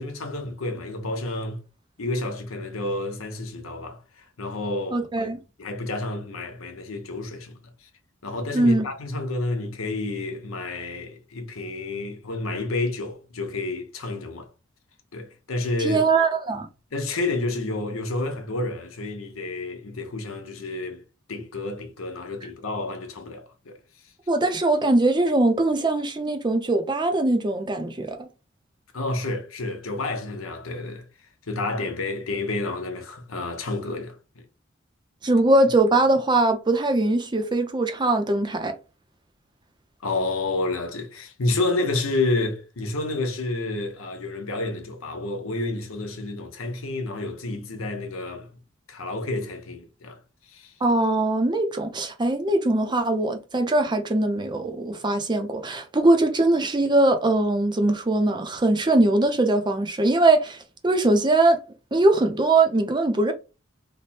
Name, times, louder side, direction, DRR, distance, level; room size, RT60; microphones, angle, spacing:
voice 1, 0.0-1.6 2.0-5.3 5.6-7.6 8.2-14.5 15.1-16.0 16.9-21.0 21.3-23.8 28.9-31.0 31.5-34.2 40.0-48.5 48.9-50.2 50.5-50.7, left 2 dB, 85° left, 0.8 m, -30 dB
voice 2, 4.9-5.4 8.5-8.9 15.8-16.7 24.3-28.3 35.2-38.7 50.8-60.6 60.8-61.6 61.9-63.3, right 2 dB, 20° right, 0.5 m, -21 dB
3.3 x 2.1 x 4.1 m
head